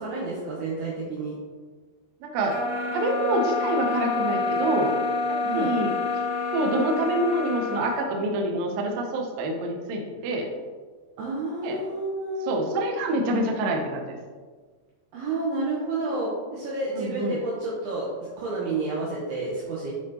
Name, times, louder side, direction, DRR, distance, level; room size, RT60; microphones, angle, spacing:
voice 1, 0.0-1.4 5.4-5.7 11.2-12.9 15.1-19.9, right 2 dB, 75° right, -6 dB, 2.6 m, -30 dB
voice 2, 2.2-2.6 2.9-4.9 5.3-5.9 6.5-10.5 11.6-11.8 12.5-14.2 16.9-17.4, right 1 dB, 90° right, 1 dB, 2.0 m, -26 dB
sound 1, 2.5-8.0, left 3 dB, 75° left, 2.1 m, -28 dB
8.9 x 4.2 x 2.8 m, 1.5 s
omnidirectional pair, 5.1 m